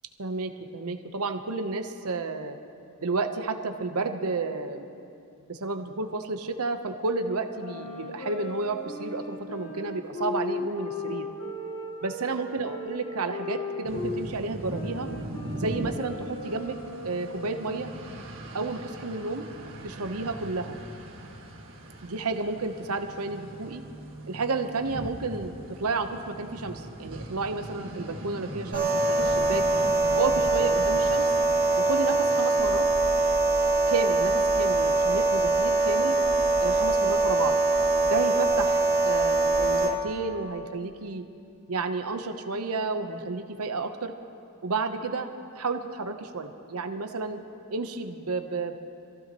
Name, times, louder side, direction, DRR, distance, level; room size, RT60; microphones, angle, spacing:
voice 1, 0.2-2.6 3.0-5.0 5.5-11.3 12.0-15.1 15.5-16.8 17.0-17.9 18.5-19.4 19.8-20.8 22.0-23.8 24.3-29.7 30.1-31.3 31.8-32.9 33.9-36.2 36.6-37.6 38.0-41.2 41.7-44.1 44.6-45.3 45.5-47.4 47.7-48.7, right 3 dB, 75° right, 6 dB, 1.0 m, -31 dB
sound 1, 7.6-14.3 14.7-17.7, left 2 dB, 65° left, 2.4 m, -37 dB
sound 2, 13.8-32.5, right 1 dB, 60° right, 1.8 m, -40 dB
sound 3, 28.7-39.9, right 2 dB, 40° right, 2.1 m, -23 dB
25.5 x 15.5 x 3.1 m, 2.5 s
head